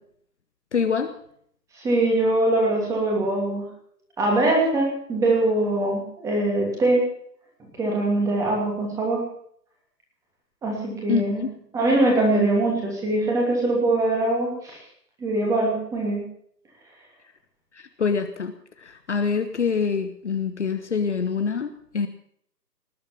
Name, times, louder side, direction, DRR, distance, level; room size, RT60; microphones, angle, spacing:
voice 1, 0.7-1.1 11.1-11.5 17.7-18.5 18.8-22.1, left 5 dB, 45° left, 8 dB, 1.2 m, -25 dB
voice 2, 1.7-3.7 4.2-7.0 7.8-9.3 10.6-11.4 11.7-14.8 15.2-16.2, right 2 dB, 5° right, -1 dB, 2.9 m, -22 dB
19.5 x 8.6 x 7.3 m, 0.66 s
figure-of-eight pair, 145°, 49 cm